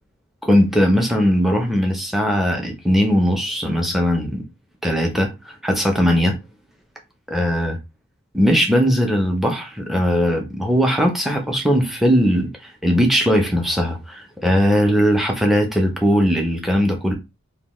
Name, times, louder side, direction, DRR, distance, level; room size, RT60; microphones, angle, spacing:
voice 1, 0.4-4.5 4.8-6.4 7.3-7.7 8.3-12.5 12.8-17.1, equal, ahead, 0.5 m, -19 dB
2.7 x 2.2 x 3.0 m
head